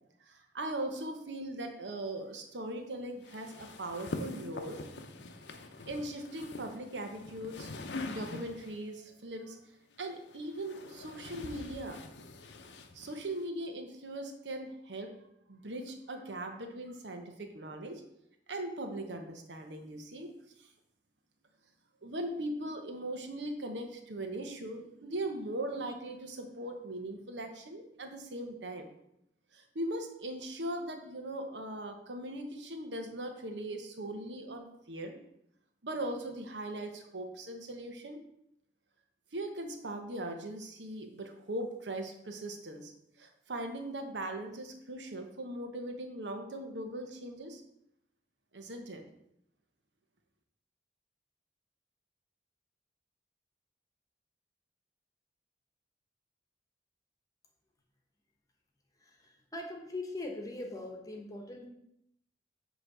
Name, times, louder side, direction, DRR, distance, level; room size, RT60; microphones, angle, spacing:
voice 1, 0.3-4.8 5.9-7.7 8.1-9.6 10.0-12.0 12.9-15.1 15.5-18.0 18.5-20.3 20.6-20.7 22.0-28.9 29.5-35.2 35.8-38.2 39.3-42.9 43.2-47.6 48.5-49.0, right 1 dB, 85° right, 4 dB, 1.0 m, -39 dB
sound 1, 3.2-8.9 9.9-13.5, left 2 dB, 85° left, 0.7 m, -44 dB
voice 2, 59.0-61.7, left 2 dB, 20° left, 1 dB, 1.0 m, -41 dB
8.0 x 3.1 x 6.1 m, 0.78 s
head